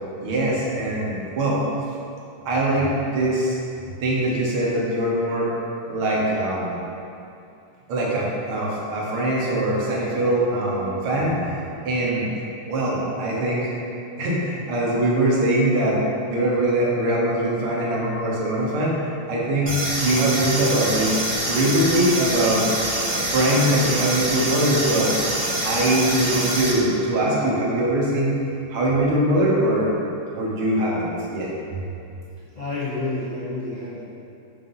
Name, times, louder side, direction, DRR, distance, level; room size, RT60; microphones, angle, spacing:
voice 1, 0.2-1.6 2.5-3.6 3.8-5.5 5.9-6.7 7.9-11.5 11.9-12.3 12.7-13.7 14.2-16.0 16.3-19.0 19.3-22.7 23.1-25.1 25.6-28.4 28.7-29.9 30.4-31.5, right 1 dB, 80° right, -5 dB, 2.0 m, -22 dB
sound 1, 19.7-26.7, right 1 dB, 35° right, 0.9 m, -25 dB
voice 2, 32.5-34.1, left 2 dB, 65° left, -10 dB, 0.4 m, -29 dB
7.2 x 2.7 x 5.4 m, 2.6 s
omnidirectional pair, 2.3 m